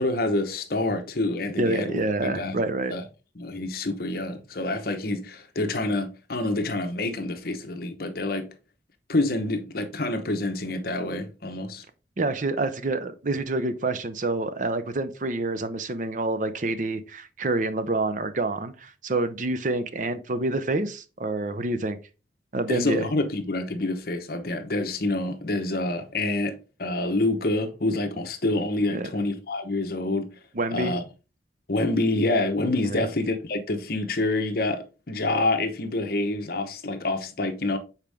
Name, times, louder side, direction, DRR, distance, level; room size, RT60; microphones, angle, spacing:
voice 1, 0.0-2.6 2.9-3.0 3.4-8.5 9.1-11.8 22.7-30.3 30.7-31.0 31.7-37.8, left 2 dB, 55° left, 0.9 m, -27 dB
voice 2, 1.6-2.9 12.2-22.0 22.5-23.1 28.9-29.1 30.5-31.0 32.8-33.1, right 2 dB, 45° right, 0.6 m, -27 dB
6.9 x 4.4 x 3.4 m
head